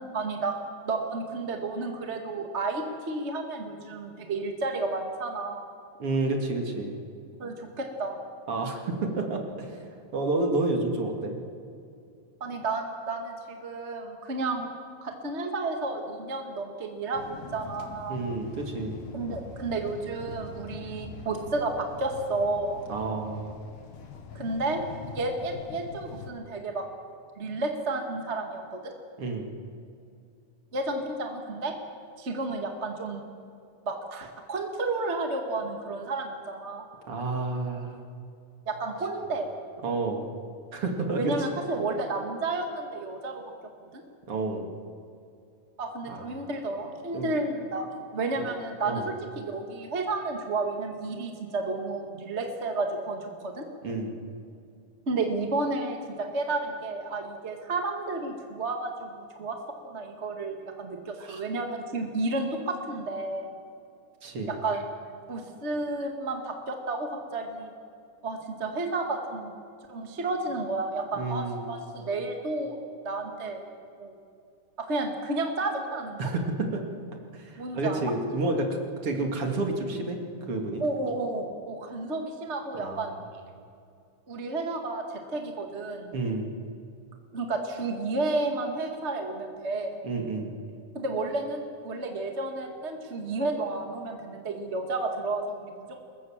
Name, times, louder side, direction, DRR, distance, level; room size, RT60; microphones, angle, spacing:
voice 1, 0.1-0.6 0.8-5.7 7.4-8.2 12.4-14.7 15.0-18.2 19.1-22.8 24.3-24.8 25.1-26.8 27.4-28.9 30.7-31.7 32.2-33.2 33.8-36.8 38.6-39.5 41.2-43.4 43.8-43.9 45.8-53.6 55.1-59.6 59.8-63.5 64.5-64.9 65.3-67.7 68.2-69.5 69.9-72.8 73.0-73.6 74.0-74.2 74.8-76.3 77.6-78.0 80.8-83.1 84.3-86.1 87.3-90.0 90.9-96.0, right 2 dB, 25° right, 4 dB, 1.6 m, -31 dB
voice 2, 6.0-6.9 8.5-9.9 10.1-11.3 18.1-18.9 22.9-23.5 29.2-29.5 37.1-38.0 39.8-40.3 40.7-41.5 44.3-44.7 46.1-46.5 47.1-47.3 48.4-48.5 48.8-49.1 53.8-54.1 61.2-61.4 64.2-64.5 71.2-71.7 76.2-76.8 77.3-78.7 79.0-80.2 80.5-80.8 82.7-83.2 86.1-86.5 90.0-90.5, right 2 dB, 45° right, 3 dB, 3.3 m, -30 dB
sound 1, 17.1-26.3, left 5 dB, 85° left, 3.4 m, -43 dB
24.0 x 21.5 x 7.4 m, 2.5 s
omnidirectional pair, 3.6 m